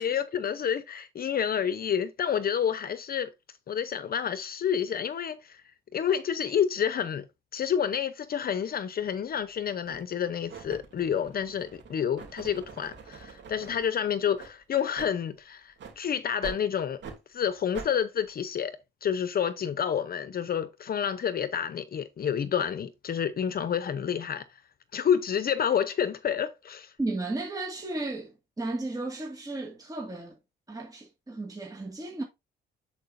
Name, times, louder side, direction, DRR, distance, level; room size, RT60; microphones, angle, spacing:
voice 1, 0.0-3.3 3.7-5.6 5.9-7.2 7.5-17.0 17.3-18.7 19.0-24.4 24.9-26.9, left 8 dB, 50° left, 0.8 m, -29 dB
sound 1, 9.0-9.2 9.8-10.1 10.5-13.9 14.3-14.5 14.9-15.1 15.8-16.0 16.4-16.6 17.0-17.2 17.7-17.9, right 5 dB, 65° right, 2.9 m, -44 dB
voice 2, 27.0-30.3 30.7-32.2, right 2 dB, 20° right, 2.0 m, -34 dB
10.0 x 4.8 x 2.6 m
cardioid pair, 90°, 20 cm